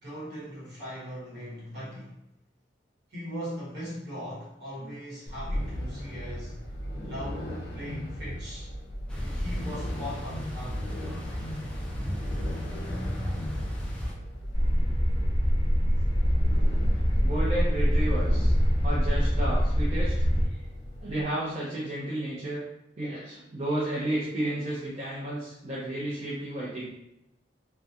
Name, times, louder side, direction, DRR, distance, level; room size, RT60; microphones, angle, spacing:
voice 1, 0.0-2.1 3.1-6.6 7.0-8.7 9.2-10.9 16.5-16.6, equal, 65° right, -7 dB, 1.1 m, -39 dB
sound 1, 5.3-21.2, equal, 60° left, 0.6 m, -36 dB
sound 2, 9.1-14.1, equal, 5° left, 0.4 m, -35 dB
sound 3, 14.5-20.5, equal, 30° left, 0.8 m, -24 dB
voice 2, 17.2-18.5 18.8-20.2 21.0-22.6 23.0-26.9, right 1 dB, 40° right, -8 dB, 0.6 m, -32 dB
2.8 x 2.2 x 2.3 m, 0.84 s
head